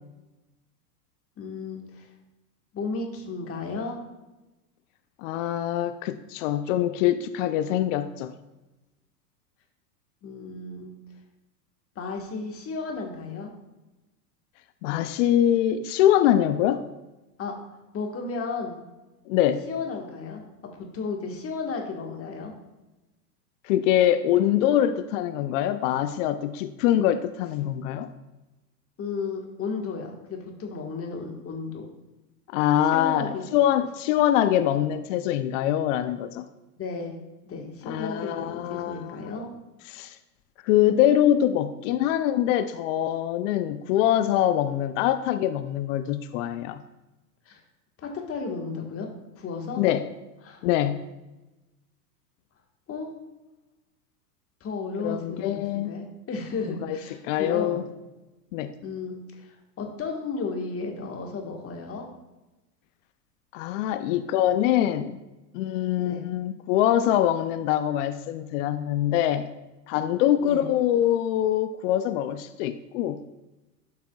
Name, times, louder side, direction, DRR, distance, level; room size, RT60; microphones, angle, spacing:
voice 1, 1.4-2.1 2.7-4.0 10.2-10.9 11.9-13.5 17.4-17.5 17.9-18.8 19.7-20.4 20.8-22.6 29.0-31.9 32.9-33.5 36.8-37.2 37.4-39.5 47.4-47.6 48.0-49.1 49.3-49.8 50.4-50.6 52.9-53.1 54.6-57.8 58.8-62.1 66.0-66.3 70.4-70.7, left 4 dB, 30° left, 2 dB, 1.5 m, -34 dB
voice 2, 5.2-8.3 14.8-16.8 19.3-19.6 23.6-28.1 32.5-36.4 37.8-39.2 39.9-40.2 40.7-46.8 49.8-50.1 50.6-51.0 55.0-55.9 56.8-57.0 57.2-57.8 58.5-58.7 63.5-65.2 65.5-69.5 69.9-73.2, left 11 dB, 50° left, 11 dB, 0.5 m, -24 dB
12.0 x 5.8 x 2.3 m, 1.0 s
hypercardioid pair, 100°, 49 cm